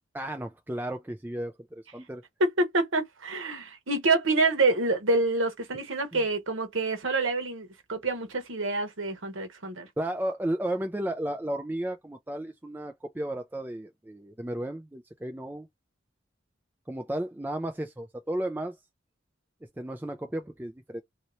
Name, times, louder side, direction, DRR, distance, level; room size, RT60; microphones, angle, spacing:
voice 1, 0.1-2.2 10.0-15.7 16.9-18.8 19.8-21.0, right 1 dB, 10° right, 0.4 m, -33 dB
voice 2, 2.4-9.9, right 2 dB, 85° right, 1.1 m, -27 dB
2.8 x 2.8 x 3.0 m
head